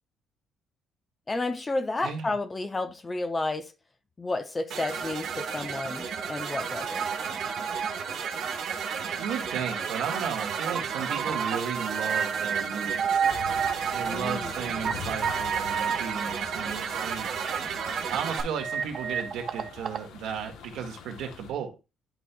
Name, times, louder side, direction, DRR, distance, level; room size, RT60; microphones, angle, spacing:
voice 1, 1.3-3.7 4.2-7.1 14.1-14.5, left 2 dB, 20° left, 0.5 m, -31 dB
voice 2, 2.0-2.3 9.2-13.2 13.9-17.3 18.1-21.8, right 7 dB, 85° right, 1.7 m, -35 dB
sound 1, 4.7-18.4, right 6 dB, 60° right, 1.3 m, -33 dB
sound 2, 6.8-7.9 8.5-8.6 10.4-10.5 10.7-10.8 11.1-14.9 15.2-17.1 18.6-20.1, right 7 dB, 45° right, 0.7 m, -31 dB
sound 3, 13.3-21.5, left 8 dB, 85° left, 1.0 m, -45 dB
11.0 x 4.3 x 2.3 m
cardioid pair, 150°, 0 cm